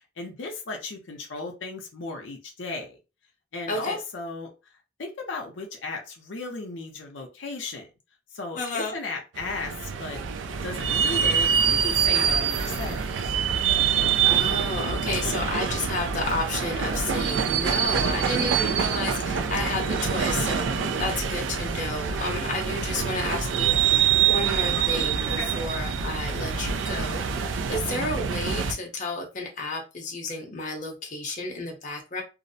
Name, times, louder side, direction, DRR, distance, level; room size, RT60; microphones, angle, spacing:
voice 1, 0.2-3.0 3.5-4.5 5.0-7.9 8.3-10.2 10.6-13.3 20.7-21.0 25.4-25.5, left 3 dB, 80° left, 2 dB, 0.6 m, -35 dB
voice 2, 8.6-8.9 14.2-32.2, left 2 dB, 40° left, 1 dB, 0.6 m, -32 dB
sound 1, 9.4-28.7, right 7 dB, 80° right, 0.4 m, -25 dB
2.5 x 2.0 x 2.6 m, 0.29 s
head